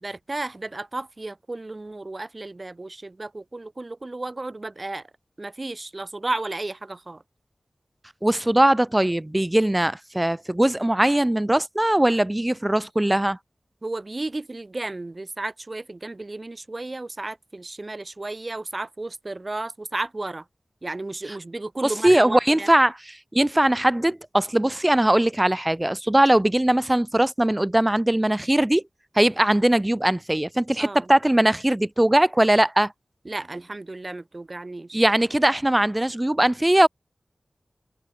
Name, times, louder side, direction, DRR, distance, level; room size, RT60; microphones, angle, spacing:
voice 1, 0.0-5.1 5.4-7.2 13.8-20.5 20.8-22.7 30.8-31.1 33.2-35.0, right 2 dB, 35° right, 0.9 m, -33 dB
voice 2, 8.2-13.4 21.8-22.9 23.3-28.8 29.2-32.9 34.9-36.9, right 1 dB, 15° right, 0.3 m, -20 dB
wide cardioid pair, 75°, 0 cm